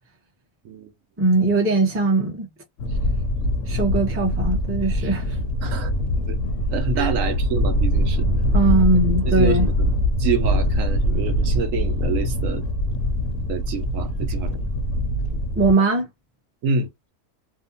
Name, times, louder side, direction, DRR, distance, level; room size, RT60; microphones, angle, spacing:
voice 1, 1.2-2.5 3.7-5.4 7.0-7.1 8.5-9.7 15.6-16.1, right 2 dB, 15° right, 0.5 m, -20 dB
sound 1, 2.8-15.7, equal, 65° left, 0.8 m, -23 dB
voice 2, 6.7-8.2 9.0-9.7 10.2-12.6 13.5-14.7 16.6-16.9, right 5 dB, 70° right, 0.9 m, -27 dB
2.7 x 2.2 x 2.6 m
omnidirectional pair, 1.6 m